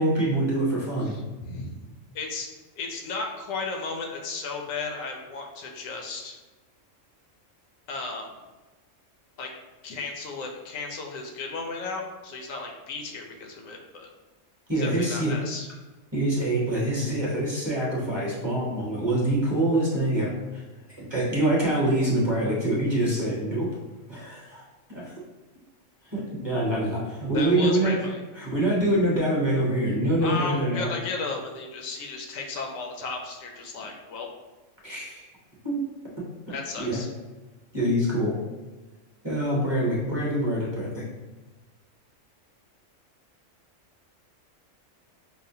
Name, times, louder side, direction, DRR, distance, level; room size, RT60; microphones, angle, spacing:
voice 1, 0.0-1.1 14.7-15.3 16.1-20.6 21.0-23.7 24.1-24.6 24.9-25.1 26.1-28.1 28.4-30.9 34.8-35.2 35.6-35.8 36.8-37.0 37.7-38.3 39.2-41.0, right 1 dB, 25° right, -5 dB, 0.7 m, -25 dB
voice 2, 1.0-1.7 2.1-2.5 2.8-6.4 7.9-8.3 9.4-9.5 9.8-14.1 14.7-15.7 27.3-28.2 30.2-34.3 36.5-37.1, left 4 dB, 85° left, 2 dB, 1.0 m, -34 dB
5.3 x 2.0 x 2.7 m, 1.2 s
omnidirectional pair, 1.3 m